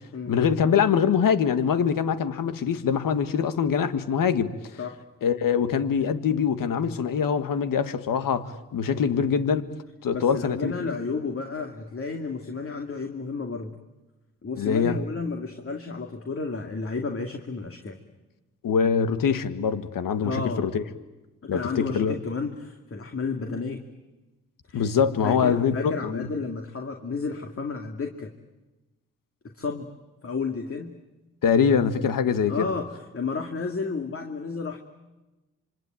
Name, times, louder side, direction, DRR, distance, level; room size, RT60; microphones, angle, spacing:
voice 1, 0.3-4.5 5.2-9.6 10.0-11.0 14.6-15.0 18.6-20.8 21.5-22.2 24.7-26.3 31.4-32.7, left 7 dB, 70° left, 1.8 m, -24 dB
voice 2, 8.9-9.3 10.1-13.8 14.4-18.0 20.2-20.7 21.4-23.8 24.7-24.9 25.2-28.3 29.5-29.9 30.2-30.9 32.5-34.8, left 4 dB, 40° left, 2.5 m, -32 dB
26.5 x 24.5 x 9.0 m
supercardioid pair, 50°, 34 cm